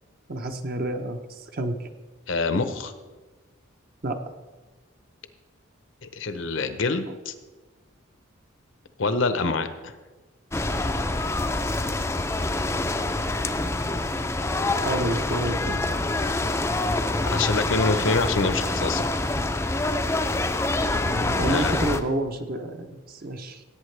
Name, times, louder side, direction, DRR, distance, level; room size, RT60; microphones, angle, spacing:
voice 1, 0.3-1.9 4.0-4.2 7.1-7.2 14.8-15.8 21.0-23.6, right 1 dB, 45° right, 5 dB, 0.7 m, -29 dB
voice 2, 2.3-2.9 6.0-7.3 9.0-9.9 17.3-19.0 21.5-21.8, left 3 dB, 70° left, 10 dB, 0.8 m, -26 dB
sound 1, 10.5-22.0, left 2 dB, 15° left, 0.4 m, -26 dB
17.0 x 8.5 x 3.3 m, 1.3 s
head